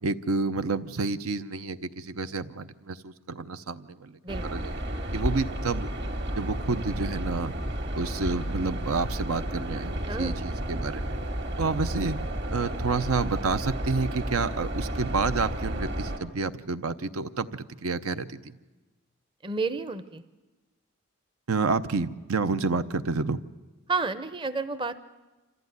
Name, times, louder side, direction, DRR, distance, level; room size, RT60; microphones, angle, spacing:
voice 1, 0.0-4.2 4.5-4.7 5.1-5.9 6.4-7.5 7.9-11.2 11.6-12.2 12.5-18.6 21.5-23.4, right 4 dB, 85° right, 11 dB, 0.7 m, -29 dB
voice 2, 4.2-4.7 10.1-10.4 19.4-20.2 23.9-25.0, right 4 dB, 20° right, 11 dB, 0.6 m, -31 dB
sound 1, 4.3-16.2, right 1 dB, 50° right, 2.0 m, -32 dB
27.0 x 14.0 x 9.5 m, 1.2 s
head